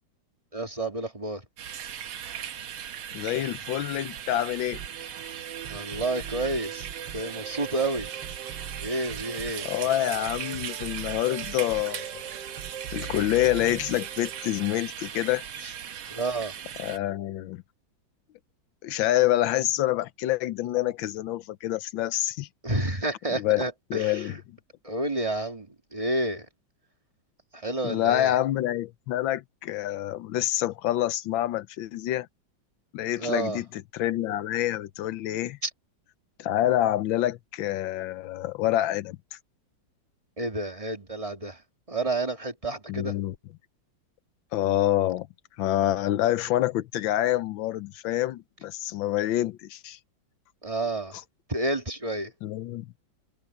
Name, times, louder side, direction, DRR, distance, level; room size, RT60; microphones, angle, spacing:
voice 1, 0.5-1.5 5.7-6.9 7.1-8.1 8.8-9.7 15.5-15.7 16.1-16.5 22.6-24.4 24.8-26.5 27.5-28.4 33.2-33.6 35.6-35.7 40.4-43.2 50.6-51.2 51.5-52.3, right 2 dB, 15° right, 2.0 m, -30 dB
sound 1, 1.6-17.0, right 9 dB, 85° right, 1.9 m, -38 dB
voice 2, 3.1-4.8 9.6-12.1 12.9-15.4 16.8-17.6 18.8-22.5 23.4-23.6 23.9-24.6 27.8-32.3 32.9-33.6 33.9-35.6 36.4-39.2 42.9-43.3 44.5-45.3 45.6-50.0 52.4-52.9, left 13 dB, 80° left, 1.4 m, -27 dB
sound 2, 4.7-14.8, right 8 dB, 70° right, 1.6 m, -41 dB
omnidirectional pair, 2.1 m